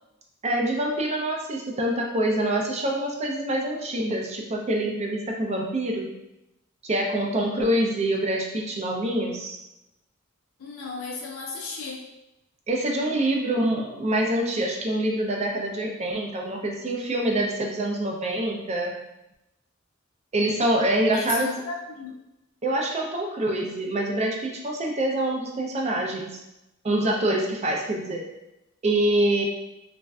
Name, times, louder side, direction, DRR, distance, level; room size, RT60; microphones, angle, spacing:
voice 1, 0.4-6.1 6.8-9.6 12.7-18.9 20.3-21.5 22.6-26.4 26.8-28.3 28.8-29.4, right 1 dB, 35° right, 0 dB, 0.4 m, -25 dB
voice 2, 10.6-12.0 21.1-22.2, left 3 dB, 80° left, -2 dB, 0.4 m, -34 dB
3.1 x 2.5 x 2.3 m, 0.92 s
head